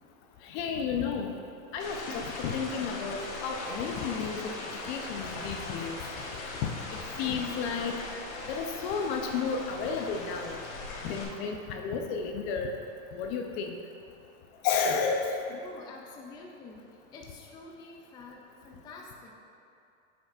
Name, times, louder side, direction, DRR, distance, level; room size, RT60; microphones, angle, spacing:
voice 1, 0.5-1.3 1.7-2.0 2.4-3.2 3.4-4.4 4.9-6.0 6.6-6.7 7.2-7.9 8.5-10.6 11.0-12.7 13.1-13.7 14.6-15.4, left 6 dB, 50° left, 3 dB, 0.7 m, -31 dB
sound 1, 1.8-11.2, left 2 dB, 80° left, 1.6 m, -39 dB
voice 2, 15.6-16.8 17.1-19.3, left 3 dB, 10° left, -1 dB, 0.3 m, -48 dB
9.2 x 6.3 x 2.4 m, 2.6 s
supercardioid pair, 130°, 40 cm